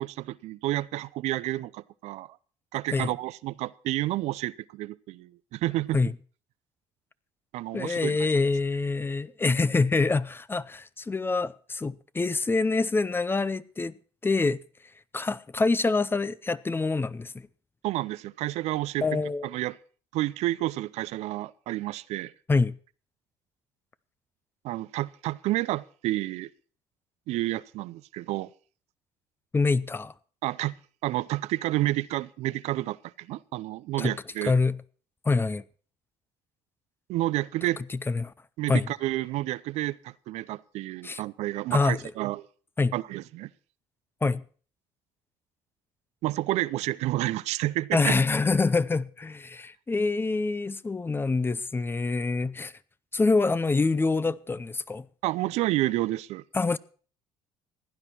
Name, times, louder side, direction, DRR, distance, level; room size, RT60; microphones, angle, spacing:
voice 1, 0.0-2.4 2.7-6.0 7.5-8.3 17.8-19.0 19.4-19.8 20.1-22.3 24.6-26.5 27.3-28.5 30.4-30.8 31.0-34.6 37.1-37.8 38.6-42.5 42.9-43.5 46.2-48.1 55.2-56.4, right 16 dB, 70° right, 0.5 m, -30 dB
voice 2, 7.7-14.0 14.2-14.6 15.1-17.5 19.0-19.5 22.5-22.8 29.5-30.1 34.0-34.1 34.4-34.8 35.2-35.6 38.1-38.3 38.7-38.9 41.0-41.2 41.7-42.0 42.8-42.9 44.2-44.4 47.9-52.7 53.1-55.1 56.5-56.8, left 3 dB, 20° left, 0.6 m, -25 dB
16.0 x 9.9 x 4.4 m
supercardioid pair, 80°, 12 cm